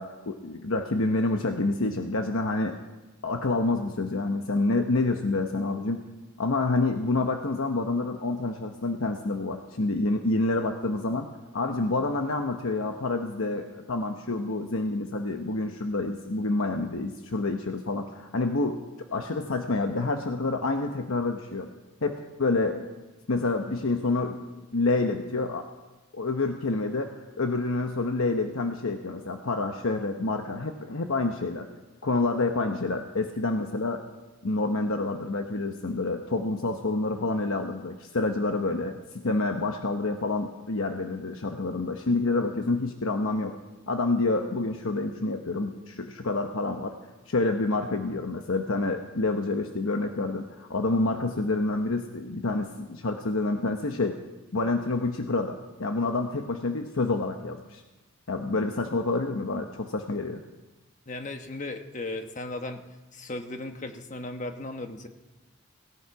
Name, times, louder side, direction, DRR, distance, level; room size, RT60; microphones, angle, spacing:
voice 1, 0.0-2.8 3.2-6.0 6.4-18.8 19.1-21.7 22.0-22.9 23.3-24.4 24.7-25.6 26.1-31.7 32.0-34.0 34.4-43.6 43.9-46.9 47.3-54.2 54.5-57.8 58.3-60.4, left 2 dB, 70° left, 5 dB, 1.0 m, -28 dB
voice 2, 61.1-62.9 63.1-65.1, left 2 dB, 35° left, 6 dB, 1.1 m, -36 dB
17.5 x 17.5 x 4.8 m, 1.1 s
head